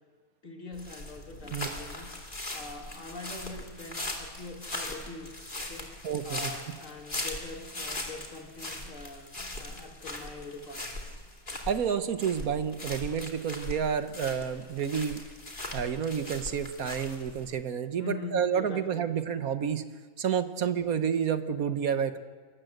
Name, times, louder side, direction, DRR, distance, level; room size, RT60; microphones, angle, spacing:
voice 1, 0.4-11.2 11.5-11.7 18.0-19.1 20.8-21.0, left 3 dB, 60° left, 2 dB, 3.0 m, -43 dB
sound 1, 0.7-17.4, left 2 dB, 35° left, 2.9 m, -40 dB
voice 2, 6.0-6.5 11.7-15.2 15.7-19.8 20.2-22.2, right 7 dB, 80° right, 10 dB, 1.5 m, -29 dB
26.5 x 13.5 x 7.9 m, 1.5 s
omnidirectional pair, 1.5 m